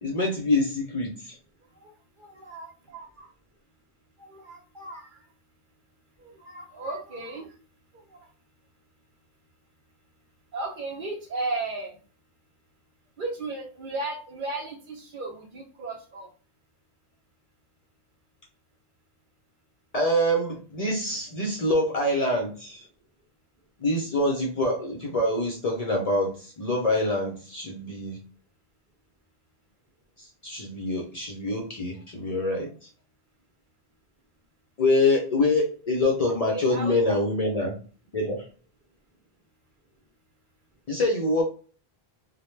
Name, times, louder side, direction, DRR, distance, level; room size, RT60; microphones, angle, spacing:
voice 1, 0.0-1.4 19.9-22.9 23.8-28.2 30.2-32.7 34.8-37.7 38.1-38.5 40.9-41.4, left 1 dB, 50° left, 0 dB, 0.5 m, -25 dB
voice 2, 2.2-3.3 4.2-5.2 6.2-7.5 8.1-8.2 10.5-11.9 13.2-16.3 31.6-31.7 36.2-37.0, right 2 dB, 60° right, 3 dB, 0.7 m, -35 dB
2.1 x 2.1 x 3.0 m, 0.39 s
omnidirectional pair, 1.1 m